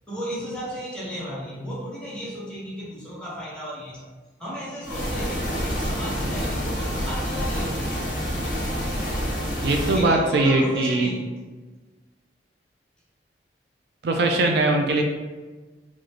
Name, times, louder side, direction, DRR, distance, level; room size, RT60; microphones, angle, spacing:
voice 1, 0.1-4.1 4.4-7.8 9.8-11.3, equal, 5° left, -9 dB, 1.1 m, -34 dB
sound 1, 4.8-10.1, equal, 45° left, 1.1 m, -27 dB
voice 2, 9.6-11.1 14.0-15.0, right 2 dB, 65° right, 2 dB, 0.4 m, -21 dB
4.9 x 2.2 x 2.9 m, 1.3 s
head